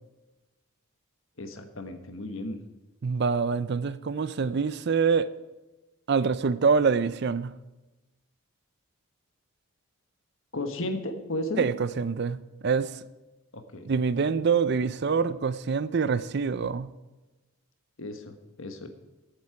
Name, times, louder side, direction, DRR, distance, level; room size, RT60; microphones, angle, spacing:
voice 1, 1.4-2.6 10.5-11.7 13.5-13.9 18.0-18.9, left 1 dB, 60° left, 1.3 m, -34 dB
voice 2, 3.0-5.3 6.1-7.5 11.6-12.4 12.6-12.9 13.8-16.9, right 5 dB, 50° right, 0.4 m, -25 dB
14.5 x 8.3 x 4.8 m
head